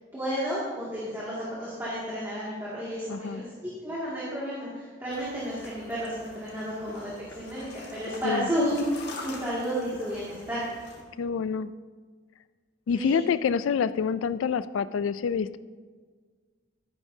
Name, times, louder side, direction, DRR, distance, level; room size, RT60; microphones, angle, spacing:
voice 1, 0.1-8.8 9.2-10.6 12.9-13.2, equal, 10° right, -9 dB, 2.2 m, -32 dB
voice 2, 3.1-3.4 8.2-8.5 11.2-11.7 12.9-15.6, left 6 dB, 90° left, 14 dB, 0.3 m, -27 dB
sound 1, 5.1-11.0, left 2 dB, 55° left, 1.7 m, -45 dB
13.0 x 11.0 x 2.7 m, 1.5 s
head